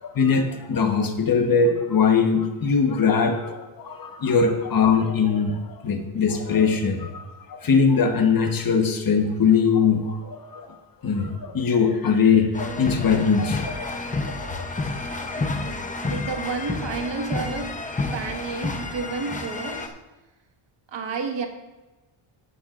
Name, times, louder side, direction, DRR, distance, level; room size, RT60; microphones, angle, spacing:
voice 1, 0.0-10.8 11.0-14.0 14.3-14.7, left 5 dB, 45° left, 5 dB, 1.3 m, -21 dB
sound 1, 12.5-19.9, left 3 dB, 15° left, 0.8 m, -30 dB
voice 2, 15.4-17.7 18.1-19.9 20.9-21.5, right 4 dB, 60° right, 4 dB, 1.7 m, -31 dB
15.5 x 10.5 x 2.5 m, 1.1 s
cardioid pair, 130°, 50 cm